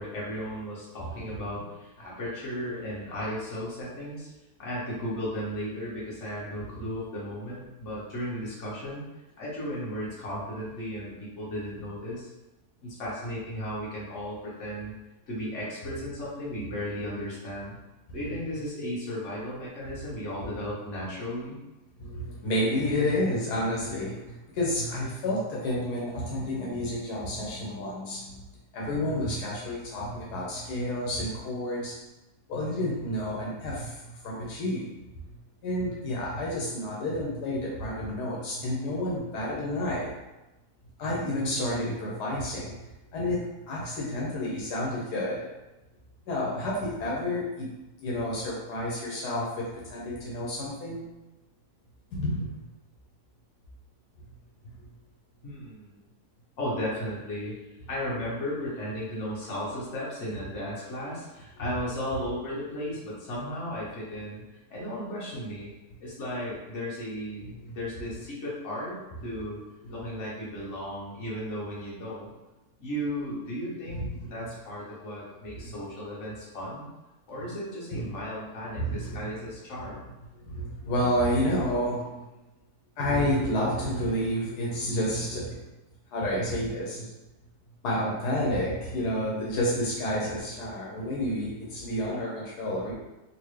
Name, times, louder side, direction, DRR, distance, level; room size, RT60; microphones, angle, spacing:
voice 1, 0.0-4.3 4.6-9.0 9.4-12.3 12.8-14.9 15.3-17.8 18.1-21.6 55.4-56.1 56.6-57.6 57.9-64.4 64.7-65.7 66.0-69.6 69.9-72.3 72.8-76.9 77.3-80.1, equal, 50° left, -7 dB, 1.4 m, -35 dB
voice 2, 1.0-1.4 6.7-6.8 20.4-20.5 22.0-28.4 28.7-31.9 32.5-34.9 35.3-40.1 41.0-42.8 43.1-45.5 46.3-47.7 48.0-51.0 52.1-52.7 54.6-54.7 67.4-67.7 69.8-70.0 73.9-74.3 75.6-75.7 77.9-78.1 78.7-79.3 80.4-82.3 83.0-85.6 86.1-87.1 87.8-92.9, left 1 dB, 80° left, -4 dB, 1.3 m, -30 dB
3.8 x 2.5 x 3.1 m, 1.0 s
omnidirectional pair, 1.7 m